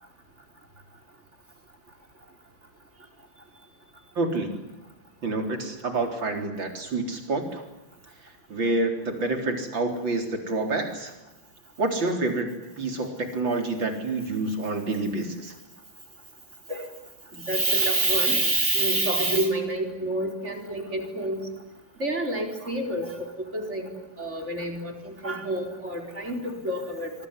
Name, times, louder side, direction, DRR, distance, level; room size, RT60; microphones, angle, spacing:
voice 1, 4.2-4.5 5.2-7.6 8.5-11.1 11.8-12.5 12.8-15.5, right 2 dB, 60° right, 5 dB, 4.6 m, -28 dB
voice 2, 17.4-21.4 22.0-23.1 23.5-23.9 24.2-27.1, right 2 dB, 30° right, 4 dB, 4.8 m, -27 dB
26.0 x 23.5 x 9.8 m, 1.0 s
omnidirectional pair, 2.3 m